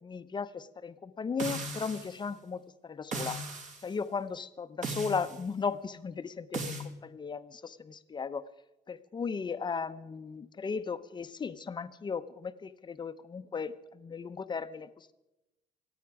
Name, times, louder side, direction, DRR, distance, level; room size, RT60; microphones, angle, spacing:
voice 1, 0.0-3.4 3.8-8.4 8.9-15.1, left 5 dB, 25° left, 12 dB, 0.8 m, -36 dB
sound 1, 1.4-2.2 3.1-3.8 4.8-5.4 6.5-6.9, right 2 dB, 45° right, 2.2 m, -37 dB
26.0 x 9.1 x 4.8 m, 0.96 s
cardioid pair, 110°, 17 cm